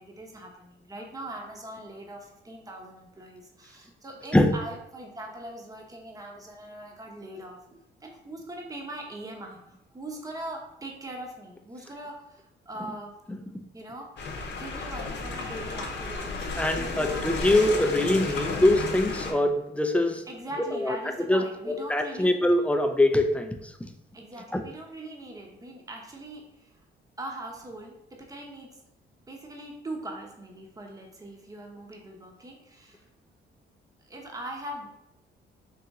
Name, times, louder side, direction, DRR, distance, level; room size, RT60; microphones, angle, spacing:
voice 1, 0.0-9.6 9.9-13.2 13.7-14.1 14.5-16.4 16.7-17.3 20.3-22.4 24.1-26.7 27.2-28.8 29.3-33.0 34.1-34.9, right 1 dB, 15° right, 1 dB, 0.9 m, -41 dB
sound 1, 14.2-19.3, left 3 dB, 60° left, 0.8 m, -33 dB
voice 2, 16.6-20.2 20.8-21.0 21.3-23.9 24.5-24.6, left 1 dB, 5° left, 5 dB, 0.5 m, -23 dB
4.1 x 2.8 x 3.6 m, 0.83 s
cardioid pair, 90°, 20 cm